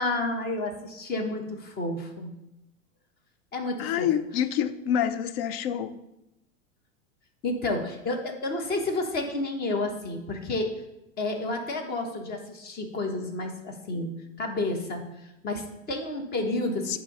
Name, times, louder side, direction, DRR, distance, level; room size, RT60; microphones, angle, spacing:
voice 1, 0.0-2.3 3.5-4.1 7.4-10.7 11.2-14.1 14.4-17.0, left 2 dB, 25° left, 4 dB, 1.0 m, -30 dB
voice 2, 3.8-5.9 16.9-17.0, left 9 dB, 45° left, 13 dB, 0.5 m, -27 dB
8.0 x 2.9 x 5.4 m, 0.89 s
hypercardioid pair, 125°, 40 cm